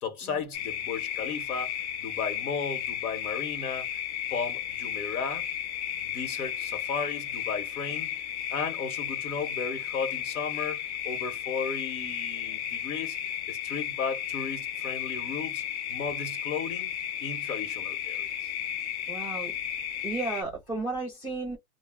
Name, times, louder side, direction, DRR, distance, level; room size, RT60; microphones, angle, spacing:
voice 1, 0.0-3.9 4.3-5.4 6.0-8.1 8.5-13.2 13.5-15.6 15.9-16.9 17.2-18.5, left 5 dB, 80° left, 1.2 m, -35 dB
sound 1, 0.5-20.4, left 10 dB, 50° left, 0.6 m, -34 dB
voice 2, 19.1-19.5 20.0-21.6, right 3 dB, 5° left, 0.4 m, -33 dB
2.2 x 2.1 x 3.5 m
supercardioid pair, 165°, 43 cm